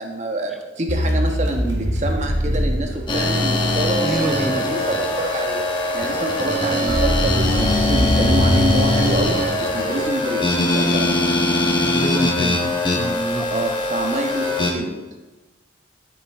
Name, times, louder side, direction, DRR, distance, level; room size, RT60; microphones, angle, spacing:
voice 1, 0.0-5.7 5.9-10.4 10.7-11.2 13.5-15.0, right 1 dB, 40° right, 3 dB, 1.3 m, -26 dB
sound 1, 0.9-3.9 6.9-10.3, equal, 75° right, 2.0 m, -23 dB
sound 2, 3.1-14.7, left 1 dB, 25° left, 1.4 m, -21 dB
voice 2, 4.0-4.7 11.8-12.6 12.9-13.5, equal, ahead, 5 dB, 0.7 m, -26 dB
13.0 x 7.0 x 3.6 m, 1.2 s
head